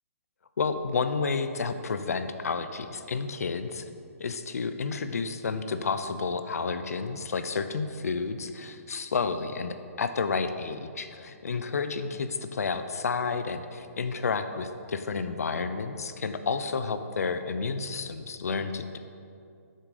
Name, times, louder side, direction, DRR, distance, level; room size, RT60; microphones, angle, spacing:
voice 1, 0.6-3.8 4.2-19.0, left 4 dB, 75° left, 10 dB, 0.5 m, -31 dB
7.6 x 6.5 x 4.9 m, 2.5 s
hypercardioid pair, 175°, 8 cm